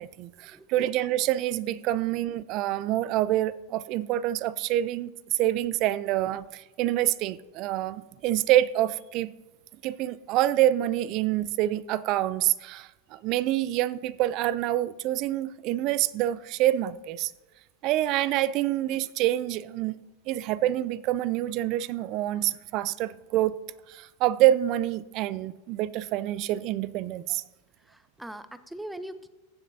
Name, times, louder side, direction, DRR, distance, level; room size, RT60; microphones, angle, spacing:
voice 1, 0.0-9.3 9.8-17.3 17.8-20.0 20.3-23.5 23.9-27.4, right 14 dB, 50° right, 0.4 m, -26 dB
voice 2, 27.9-29.3, right 1 dB, 5° right, 0.6 m, -41 dB
15.5 x 7.4 x 2.7 m
hypercardioid pair, 110°, 0 cm